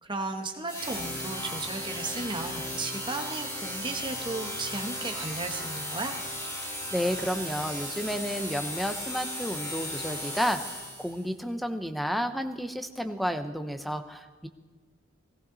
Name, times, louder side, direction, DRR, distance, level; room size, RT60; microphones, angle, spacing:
voice 1, 0.0-6.1, right 3 dB, 25° right, 4 dB, 1.5 m, -35 dB
sound 1, 0.7-11.2, equal, 20° left, 5.9 m, -36 dB
voice 2, 6.9-14.5, equal, ahead, 7 dB, 0.8 m, -31 dB
17.0 x 15.5 x 4.1 m, 1.4 s
head